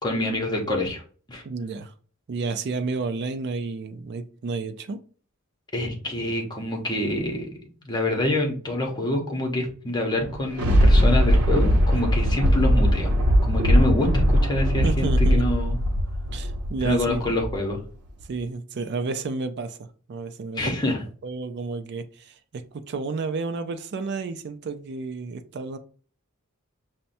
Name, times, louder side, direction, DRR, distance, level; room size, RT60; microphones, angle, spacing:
voice 1, 0.0-1.0 1.3-1.4 5.7-7.5 7.8-13.1 13.4-15.8 16.8-17.8 20.6-21.0, left 1 dB, 20° left, 0.8 m, -26 dB
voice 2, 1.4-1.9 2.3-5.0 14.8-15.4 16.3-17.2 18.3-20.7 21.2-25.8, right 4 dB, 50° right, 0.4 m, -31 dB
Thunder, 10.2-17.7 18.2-18.3, equal, 85° right, 0.7 m, -20 dB
5.5 x 2.1 x 2.6 m
head